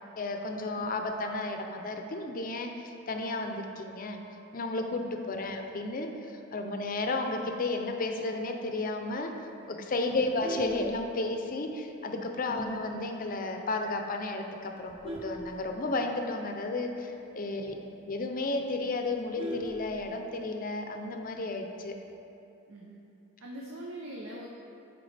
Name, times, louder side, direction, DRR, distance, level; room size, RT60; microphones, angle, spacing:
voice 1, 0.2-4.2 4.5-17.8 18.1-22.0, left 2 dB, 45° left, 4 dB, 0.5 m, -33 dB
voice 2, 0.7-1.0 5.2-5.5 10.0-10.3 12.5-12.8 17.5-18.0 22.7-23.0 23.4-24.5, right 1 dB, 70° right, -2 dB, 0.6 m, -44 dB
Vehicle horn car horn honking, 10.1-11.6 12.1-12.3 12.6-12.7 13.2-13.3 13.5-13.9 14.5-16.3 16.7-16.8 17.0-17.1 17.6-17.7 18.0-18.1 18.4-20.4 21.6-22.0, equal, 30° right, 0.7 m, -40 dB
10.0 x 4.5 x 3.3 m, 2.8 s
head